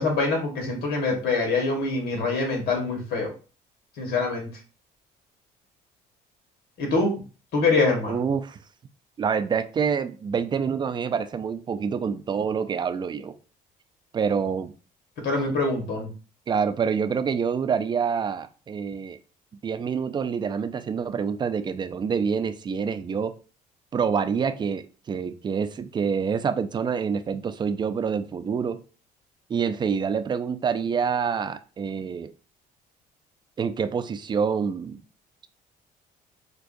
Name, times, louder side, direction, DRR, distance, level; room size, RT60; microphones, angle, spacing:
voice 1, 0.0-3.3 4.0-4.5 6.8-7.1 7.5-8.2 15.2-16.1, left 3 dB, 70° left, 1.3 m, -24 dB
voice 2, 8.1-8.6 9.2-13.4 14.1-14.7 16.5-19.2 19.6-23.4 23.9-28.8 29.5-32.3 33.6-35.0, right 6 dB, 25° right, 0.3 m, -27 dB
4.5 x 2.3 x 2.5 m
cardioid pair, 110°, 17 cm